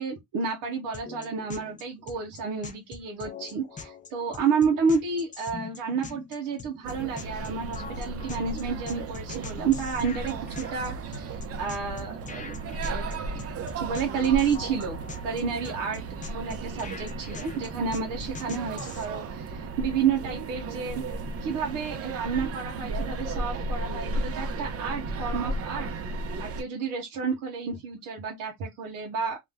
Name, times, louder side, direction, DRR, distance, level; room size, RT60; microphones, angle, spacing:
voice 1, 0.0-13.1 13.8-21.0 21.4-25.9 26.4-29.4, right 6 dB, 90° right, 0.8 m, -30 dB
sound 1, 0.9-19.1, left 5 dB, 25° left, 0.4 m, -43 dB
Bullet train arriving at station, 6.8-26.6, right 3 dB, 50° right, 0.6 m, -35 dB
2.4 x 2.0 x 3.3 m
cardioid pair, 85°, 32 cm